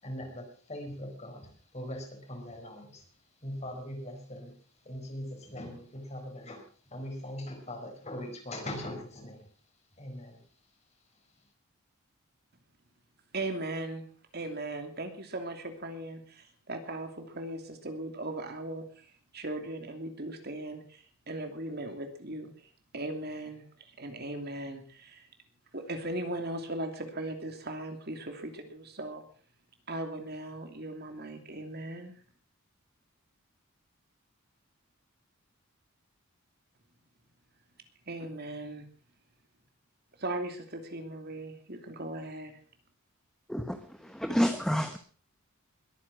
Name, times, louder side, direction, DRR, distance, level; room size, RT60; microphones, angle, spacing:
voice 1, 0.0-3.1 3.4-4.5 4.8-9.5 10.0-10.4, left 1 dB, 30° left, 3 dB, 4.7 m, -41 dB
voice 2, 13.3-14.0 14.3-25.3 25.7-29.2 29.9-32.2 38.1-38.8 40.2-42.5, right 1 dB, 50° right, 6 dB, 2.8 m, -38 dB
voice 3, 44.0-45.0, equal, ahead, 8 dB, 1.0 m, -28 dB
21.5 x 9.8 x 6.0 m, 0.43 s
head